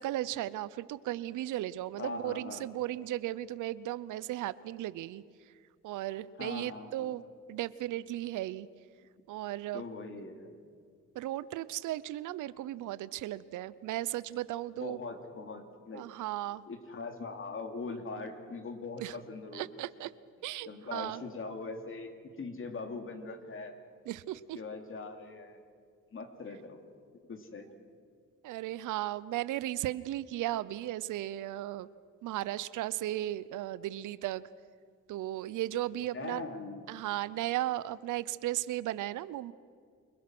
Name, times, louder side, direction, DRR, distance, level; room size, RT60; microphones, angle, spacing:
voice 1, 0.0-5.2 5.8-7.2 7.5-8.7 9.3-9.8 11.1-15.0 15.9-16.6 19.0-19.2 19.5-20.1 20.4-21.2 24.1-24.6 28.4-31.9 32.2-34.4 35.1-36.4 36.9-39.5, right 14 dB, 80° right, 18 dB, 0.7 m, -36 dB
voice 2, 2.0-2.7 6.4-7.1 9.7-10.6 14.8-16.0 16.7-19.8 20.6-23.7 24.5-25.6 26.1-26.8 27.3-27.7 36.1-36.8, left 3 dB, 45° left, 5 dB, 2.8 m, -41 dB
28.0 x 20.5 x 6.1 m, 2.1 s
cardioid pair, 90°, 30 cm